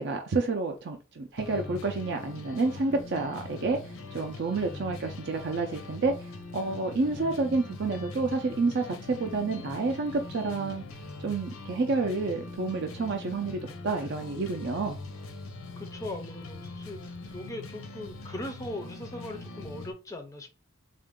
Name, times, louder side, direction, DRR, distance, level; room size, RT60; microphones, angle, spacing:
voice 1, 0.0-10.8 11.2-15.0, right 3 dB, 55° right, 0.5 m, -29 dB
sound 1, 1.4-19.9, left 2 dB, 85° left, 0.6 m, -42 dB
voice 2, 15.8-20.5, left 1 dB, 15° left, 0.5 m, -39 dB
3.7 x 2.5 x 3.5 m
head